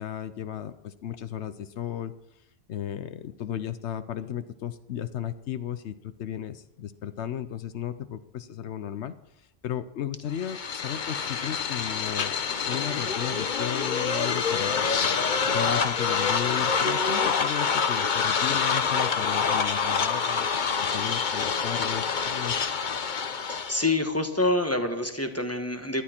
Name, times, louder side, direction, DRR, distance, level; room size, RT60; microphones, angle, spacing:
voice 1, 0.0-2.1 2.7-12.4 12.7-14.9 15.5-20.5 20.8-22.6, left 10 dB, 80° left, 12 dB, 1.0 m, -35 dB
sound 1, 10.4-23.9, left 5 dB, 50° left, 0.9 m, -26 dB
voice 2, 23.4-26.0, left 2 dB, 15° left, 6 dB, 1.3 m, -27 dB
18.0 x 12.5 x 4.4 m, 0.87 s
omnidirectional pair, 1.1 m